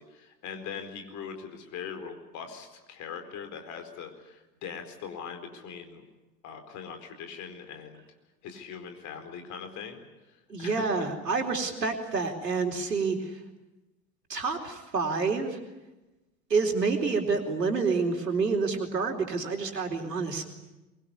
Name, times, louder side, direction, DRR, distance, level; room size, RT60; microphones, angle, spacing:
voice 1, 0.0-6.1 6.4-8.0 8.4-10.0 10.6-11.1, left 7 dB, 35° left, 6 dB, 4.5 m, -41 dB
voice 2, 10.5-13.4 14.3-15.6 16.5-20.5, right 4 dB, 75° right, 4 dB, 4.2 m, -28 dB
23.5 x 23.0 x 9.8 m, 1.0 s
figure-of-eight pair, 90°, 49 cm